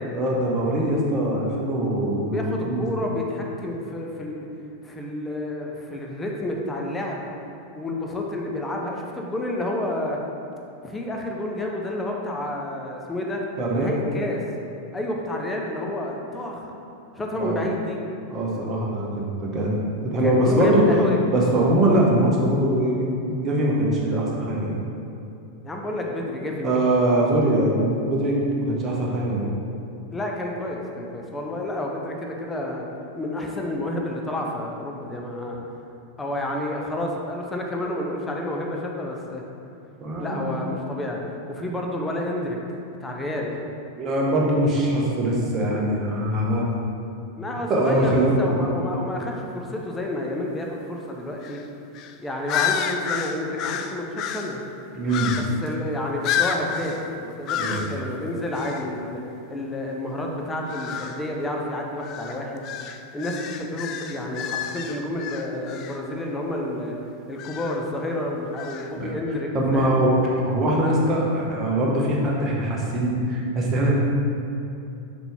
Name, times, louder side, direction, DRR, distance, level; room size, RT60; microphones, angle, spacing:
voice 1, 0.1-2.9 13.6-13.9 17.4-17.6 18.3-19.7 20.0-20.8 21.3-24.8 26.6-29.5 40.0-40.6 44.0-46.7 47.7-48.7 54.9-55.4 57.5-57.8 69.0-69.1 69.5-74.0, right 1 dB, 25° right, -4 dB, 1.4 m, -22 dB
voice 2, 2.3-4.5 4.8-7.3 7.7-10.2 10.8-13.4 13.7-14.4 14.9-16.7 17.2-18.0 20.2-21.2 25.6-26.8 30.1-32.8 33.1-35.6 36.2-39.4 40.2-41.2 41.5-42.6 43.0-43.6 47.4-51.6 52.2-54.6 55.3-59.2 59.5-62.6 63.1-67.0 67.3-70.0, left 1 dB, 10° left, 0 dB, 0.9 m, -30 dB
sound 1, 51.4-51.7 51.9-52.1 52.5-54.6 55.1-55.7 56.2-57.0 57.5-58.0 58.5-58.9 60.7-61.2 62.0-66.0 67.4-67.8 68.6-68.9, left 8 dB, 40° left, 0.4 m, -30 dB
5.9 x 5.9 x 3.6 m, 2.7 s
figure-of-eight pair, 90°, 0 cm